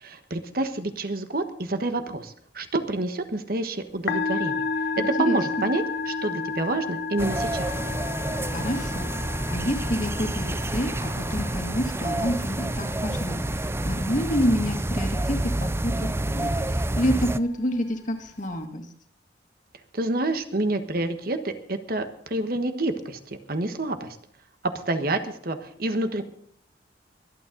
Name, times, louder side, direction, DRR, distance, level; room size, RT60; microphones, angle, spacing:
voice 1, 0.0-4.6 5.2-7.7 19.9-23.2 23.5-24.2 24.9-26.2, right 2 dB, 55° right, 8 dB, 1.3 m, -28 dB
Musical instrument, 3.9-18.6, left 5 dB, 70° left, 1.4 m, -34 dB
voice 2, 5.0-5.4 8.5-9.1 9.5-13.4 13.8-18.8, equal, 45° left, 4 dB, 2.3 m, -28 dB
sound 1, 7.2-17.4, right 1 dB, 15° right, 0.5 m, -28 dB
24.0 x 9.2 x 3.9 m, 0.65 s
head